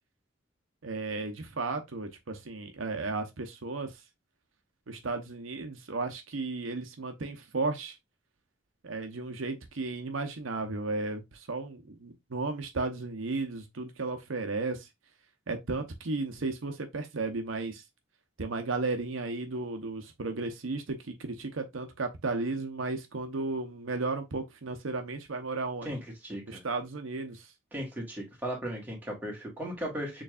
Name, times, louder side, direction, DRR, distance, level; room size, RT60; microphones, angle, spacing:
voice 1, 0.8-4.0 4.9-8.0 8.8-14.9 15.5-17.8 18.4-25.9 26.5-27.5, right 3 dB, 75° right, 0.8 m, -34 dB
voice 2, 25.8-26.6 27.7-30.2, equal, 10° right, 1.6 m, -36 dB
6.7 x 3.2 x 2.4 m
head